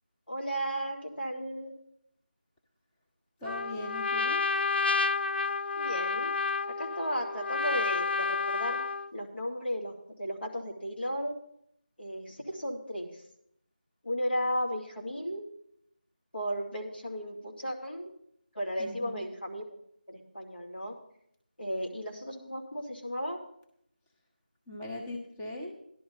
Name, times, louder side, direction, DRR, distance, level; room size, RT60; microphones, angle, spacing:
voice 1, 0.3-1.7 5.8-6.3 6.8-8.8 9.1-11.3 12.0-13.2 14.0-15.5 16.3-18.1 18.5-19.6 20.1-20.9 21.6-23.4, equal, 75° left, 0 dB, 2.9 m, -34 dB
Trumpet, 3.4-9.1, left 4 dB, 90° left, 0.4 m, -30 dB
voice 2, 3.4-4.5 18.8-19.3 24.7-25.8, left 1 dB, 5° left, -2 dB, 0.5 m, -40 dB
14.5 x 11.0 x 4.1 m, 0.72 s
figure-of-eight pair, 170°, 5 cm